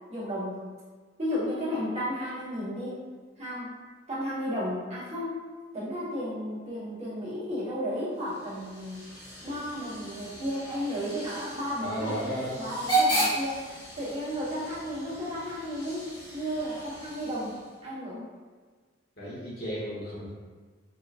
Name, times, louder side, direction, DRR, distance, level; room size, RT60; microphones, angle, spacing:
voice 1, 0.1-0.6 1.2-3.0 3.4-3.7 4.1-5.4 5.7-12.3 12.6-17.6 17.8-18.2, equal, 35° right, -10 dB, 1.4 m, -33 dB
Hiss / Train / Alarm, 8.2-17.8, right 1 dB, 25° left, 1.0 m, -34 dB
voice 2, 11.8-12.6 19.2-20.3, equal, 55° left, -6 dB, 1.2 m, -34 dB
4.8 x 2.8 x 2.5 m, 1.5 s
head